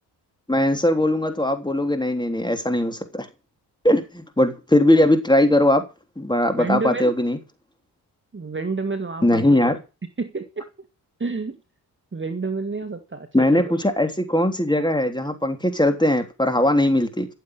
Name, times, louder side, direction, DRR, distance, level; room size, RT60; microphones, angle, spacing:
voice 1, 0.5-3.3 3.8-5.8 6.2-7.4 9.2-9.8 13.3-17.3, left 1 dB, 10° left, 7 dB, 3.4 m, -20 dB
voice 2, 6.5-7.1 8.3-9.8 10.2-10.6 11.2-11.6 12.1-13.3 13.5-13.7, right 4 dB, 30° right, 7 dB, 2.0 m, -29 dB
14.5 x 7.7 x 8.1 m, 0.30 s
cardioid pair, 65°, 40 cm